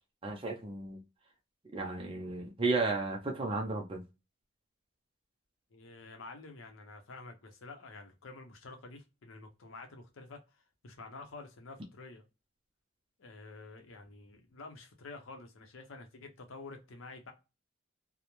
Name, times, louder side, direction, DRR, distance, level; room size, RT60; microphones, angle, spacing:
voice 1, 0.2-1.0 1.7-4.0, right 3 dB, 25° right, 0.5 m, -33 dB
voice 2, 5.7-12.2 13.2-17.3, left 3 dB, 75° left, 0.6 m, -49 dB
2.2 x 2.1 x 2.9 m
head